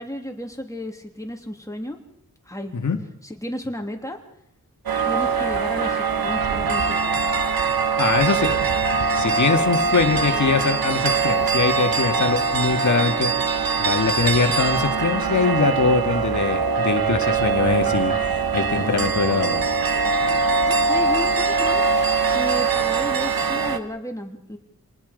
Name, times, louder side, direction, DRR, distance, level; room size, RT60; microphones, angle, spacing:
voice 1, 0.0-2.0 2.5-2.8 3.2-4.2 5.0-7.2 9.2-9.4 20.7-21.9 22.3-24.6, left 1 dB, 10° left, 3 dB, 3.1 m, -33 dB
sound 1, 4.9-23.8, right 5 dB, 80° right, 1.4 m, -22 dB
voice 2, 7.8-8.6 9.1-13.3 13.8-19.7, left 4 dB, 55° left, 6 dB, 2.1 m, -22 dB
27.5 x 19.5 x 5.3 m, 0.69 s
wide cardioid pair, 110°, 35 cm